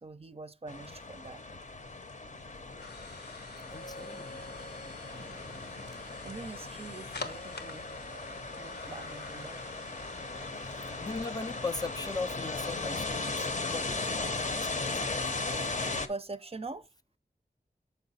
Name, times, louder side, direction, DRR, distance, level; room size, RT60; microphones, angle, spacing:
voice 1, 0.0-1.4 5.1-9.6 10.1-10.8 16.1-16.9, right 3 dB, 35° right, 0.5 m, -45 dB
sound 1, 0.7-16.1, left 3 dB, 50° left, 0.7 m, -37 dB
sound 2, 1.5-14.3, left 2 dB, 85° left, 0.9 m, -47 dB
voice 2, 3.7-4.4 11.0-15.2, left 3 dB, 25° left, 0.4 m, -39 dB
6.9 x 4.7 x 4.1 m
wide cardioid pair, 65°, 17 cm